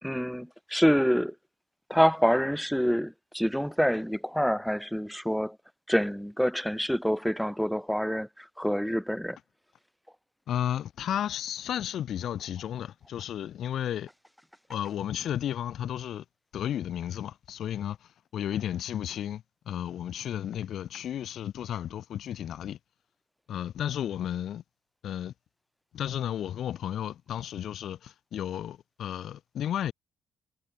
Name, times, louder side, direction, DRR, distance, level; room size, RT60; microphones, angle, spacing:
voice 1, 0.0-1.3 1.9-5.6 5.9-9.4, equal, ahead, 5.8 m, -26 dB
voice 2, 10.5-14.1 14.7-16.2 16.5-22.8 23.5-24.6 25.0-25.3 25.9-29.9, left 10 dB, 70° left, 6.6 m, -33 dB
cardioid pair, 90°, 0 cm